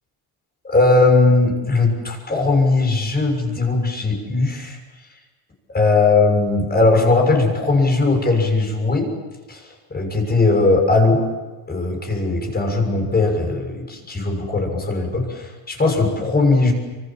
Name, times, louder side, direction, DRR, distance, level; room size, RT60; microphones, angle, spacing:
voice 1, 0.6-4.8 5.7-9.1 9.5-11.2 11.7-16.7, left 3 dB, 20° left, 3 dB, 6.5 m, -18 dB
27.0 x 25.0 x 7.6 m, 1.2 s
cardioid pair, 120°, 49 cm